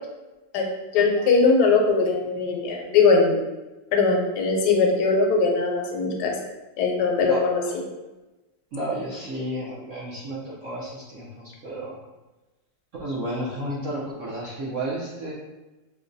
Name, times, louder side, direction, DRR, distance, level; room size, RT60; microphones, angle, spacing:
voice 1, 0.9-3.4 3.9-6.3 6.8-7.6, left 4 dB, 75° left, 1 dB, 1.0 m, -20 dB
voice 2, 8.7-12.0 13.0-15.3, right 1 dB, 60° right, -6 dB, 0.8 m, -32 dB
5.2 x 2.2 x 2.6 m, 1.1 s
omnidirectional pair, 2.0 m